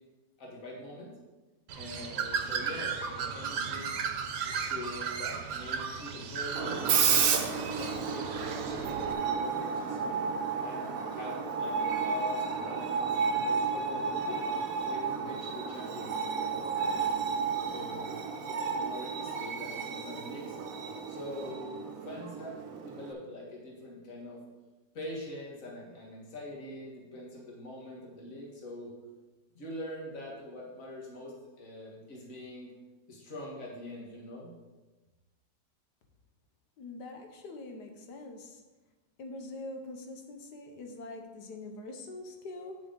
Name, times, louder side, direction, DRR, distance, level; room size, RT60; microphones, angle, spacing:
voice 1, 0.4-1.1 1.7-4.0 4.4-10.2 10.6-14.4 14.9-17.1 17.7-20.6 21.1-24.4 24.9-28.9 29.5-32.7 33.1-34.5, left 1 dB, 55° left, -3 dB, 2.1 m, -44 dB
Bird, 1.7-9.1, right 6 dB, 85° right, 1.4 m, -36 dB
Screech, 6.5-23.1, right 6 dB, 65° right, 1.1 m, -32 dB
voice 2, 36.8-38.6 39.2-42.8, left 2 dB, 80° left, 4 dB, 1.6 m, -44 dB
9.1 x 6.3 x 3.9 m, 1.2 s
omnidirectional pair, 1.7 m